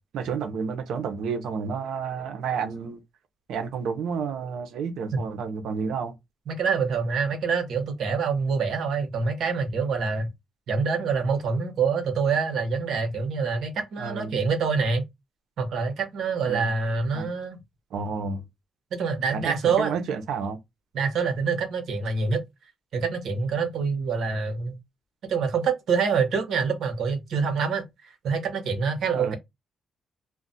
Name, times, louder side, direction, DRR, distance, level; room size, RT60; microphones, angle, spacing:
voice 1, 0.1-3.0 3.5-6.1 14.0-14.3 16.5-16.7 17.1-17.3 17.9-18.4 19.3-20.6 29.1-29.3, right 5 dB, 85° right, 0.6 m, -30 dB
voice 2, 6.5-10.3 10.7-15.0 15.6-17.6 18.9-20.0 20.9-22.4 22.9-24.8 25.3-27.8 28.2-29.3, right 5 dB, 70° right, 0.9 m, -26 dB
2.3 x 2.1 x 3.8 m
cardioid pair, 130°, 0 cm